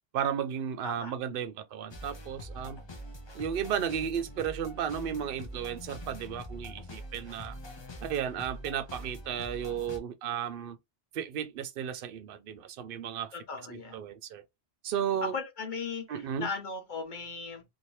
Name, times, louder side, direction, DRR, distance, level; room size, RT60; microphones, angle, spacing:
voice 1, 0.1-2.8 3.3-7.6 8.0-10.8 11.1-13.3 13.7-14.4 14.8-15.3 16.1-16.5, right 8 dB, 60° right, 0.7 m, -34 dB
voice 2, 0.8-1.4 13.3-14.0 15.2-17.6, left 4 dB, 45° left, 1.0 m, -38 dB
sound 1, 1.9-10.0, equal, 30° left, 0.6 m, -44 dB
2.8 x 2.6 x 3.1 m
omnidirectional pair, 1.2 m